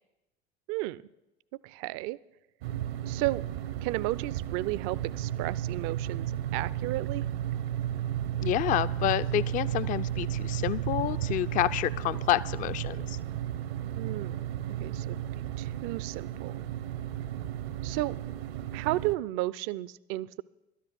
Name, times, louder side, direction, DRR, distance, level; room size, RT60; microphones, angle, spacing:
voice 1, 0.7-1.0 1.6-2.2 3.0-3.4 3.8-6.3 6.5-7.2 13.9-15.2 15.6-16.6 17.8-18.2 18.7-20.4, right 17 dB, 45° right, 20 dB, 0.4 m, -33 dB
sound 1, 2.6-19.2, right 11 dB, 65° right, 0.8 m, -33 dB
voice 2, 8.4-13.2, left 13 dB, 25° left, 17 dB, 0.4 m, -29 dB
12.5 x 10.0 x 6.0 m, 0.95 s
figure-of-eight pair, 65°, 32 cm